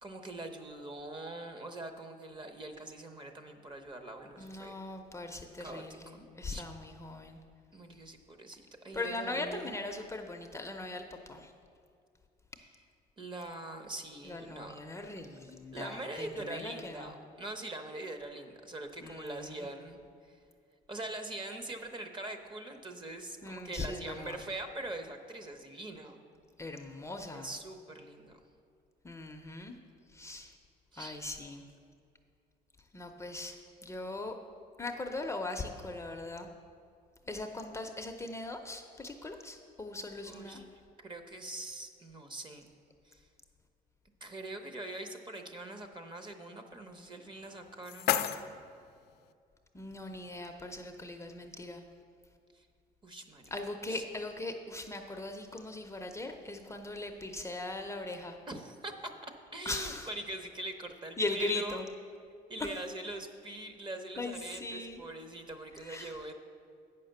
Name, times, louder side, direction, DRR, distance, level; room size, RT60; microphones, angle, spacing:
voice 1, 0.0-4.7 5.6-6.2 6.5-6.6 7.7-10.2 13.2-14.8 15.7-20.0 20.3-20.4 20.9-26.2 27.3-28.4 30.9-31.2 40.2-42.7 43.0-43.2 44.2-48.2 52.5-52.7 53.0-53.5 53.9-54.0 58.5-59.1 59.5-61.8 62.5-66.3, right 2 dB, 30° right, 6 dB, 0.8 m, -43 dB
voice 2, 4.4-7.4 8.9-11.5 14.2-17.1 19.0-19.7 23.4-24.4 26.6-27.5 29.0-29.7 30.1-30.5 31.0-31.6 32.9-33.6 33.8-34.3 34.8-36.5 37.3-40.6 49.7-51.8 53.5-58.4 59.7-60.1 61.2-61.8 62.6-62.7 64.2-65.0 65.8-66.2, left 2 dB, 15° left, 4 dB, 0.6 m, -39 dB
sound 1, 47.3-49.3, left 11 dB, 70° left, 0.4 m, -35 dB
8.5 x 5.7 x 6.5 m, 2.3 s
cardioid pair, 110°, 17 cm